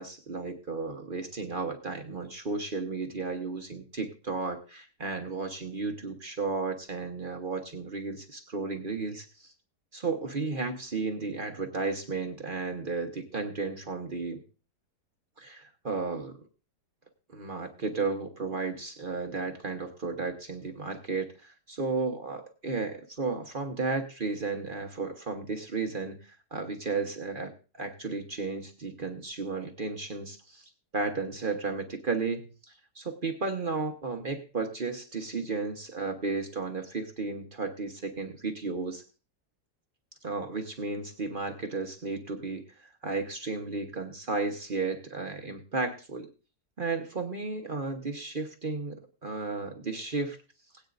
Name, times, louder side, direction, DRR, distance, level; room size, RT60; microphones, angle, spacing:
voice 1, 0.0-9.5 9.9-14.4 15.4-16.4 17.3-27.5 27.8-39.0 40.2-46.3 46.8-50.4, right 4 dB, 35° right, 5 dB, 1.2 m, -34 dB
20.0 x 8.8 x 2.6 m, 0.34 s
omnidirectional pair, 1.7 m